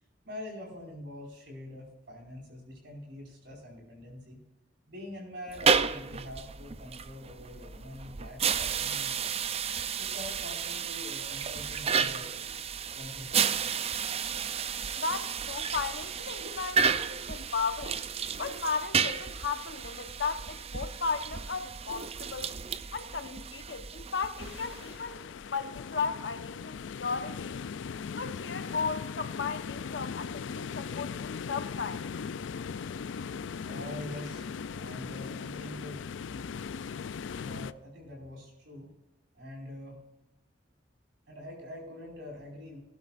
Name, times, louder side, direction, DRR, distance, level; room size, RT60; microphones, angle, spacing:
voice 1, 0.2-4.4 4.9-9.5 10.0-12.3 12.9-13.7 33.6-36.0 37.3-38.9 39.3-40.0 41.3-42.8, left 1 dB, 65° right, 5.1 m, -44 dB
sound 1, 5.5-25.1, right 6 dB, 35° right, 0.5 m, -32 dB
voice 2, 15.0-18.0 18.4-22.5 22.9-27.6 28.1-32.3, left 5 dB, 70° left, 1.1 m, -35 dB
sound 2, 24.4-37.7, left 6 dB, 85° left, 0.4 m, -39 dB
19.0 x 12.0 x 2.6 m
head